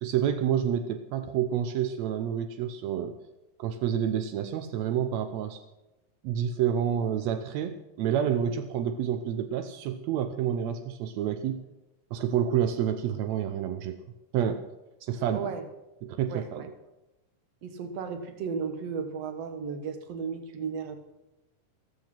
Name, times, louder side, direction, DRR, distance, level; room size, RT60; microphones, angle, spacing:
voice 1, 0.0-3.2 3.6-5.6 6.2-11.6 12.1-14.0 14.3-14.7 15.0-15.5 16.0-16.7, right 9 dB, 75° right, 8 dB, 1.6 m, -29 dB
voice 2, 16.3-16.7 17.6-21.0, right 6 dB, 55° right, 8 dB, 2.1 m, -35 dB
15.0 x 14.0 x 5.9 m, 0.98 s
omnidirectional pair, 3.9 m